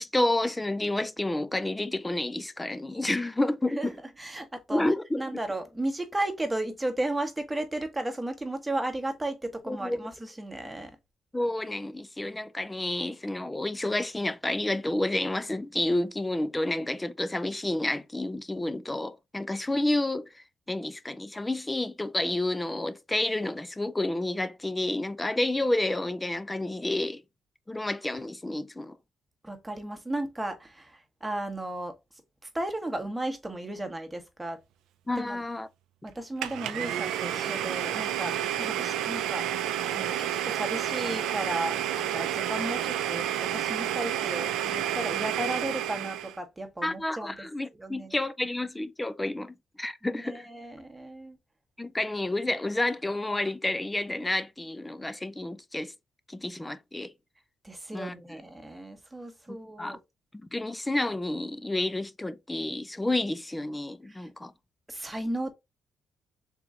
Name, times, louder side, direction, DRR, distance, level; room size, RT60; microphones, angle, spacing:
voice 1, 0.0-3.9 4.7-5.2 9.7-10.0 11.3-27.2 27.7-29.0 35.1-35.7 38.6-38.7 46.8-50.4 51.8-55.9 56.3-57.1 57.9-58.1 59.8-60.0 60.5-64.5, left 1 dB, 15° left, 0.4 m, -30 dB
voice 2, 3.8-11.0 29.4-32.0 32.4-34.6 35.2-35.4 36.0-39.5 39.9-47.5 47.7-48.2 50.1-51.4 57.6-60.0 64.0-64.3 64.9-65.5, right 1 dB, 10° right, 1.1 m, -34 dB
Domestic sounds home sounds, 36.4-46.4, right 11 dB, 90° right, 0.4 m, -30 dB
3.6 x 3.0 x 3.7 m
cardioid pair, 90°, 0 cm